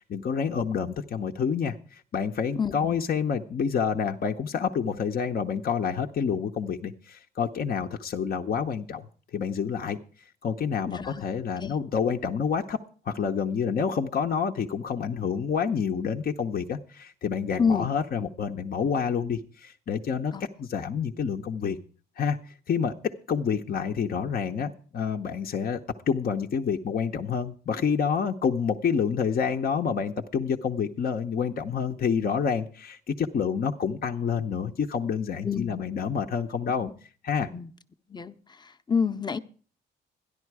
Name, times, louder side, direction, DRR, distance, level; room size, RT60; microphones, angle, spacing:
voice 1, 0.0-9.1 9.3-12.8 13.0-20.3 20.6-21.8 22.2-25.8 26.1-36.9 37.2-37.5, left 6 dB, 50° left, 0.8 m, -28 dB
voice 2, 2.6-3.0 10.9-11.2 11.6-11.8 17.6-17.9 20.3-20.4 35.4-35.8 37.5-37.7 38.1-39.4, left 6 dB, 20° left, 0.8 m, -28 dB
13.5 x 11.0 x 4.7 m
cardioid pair, 90°, 20 cm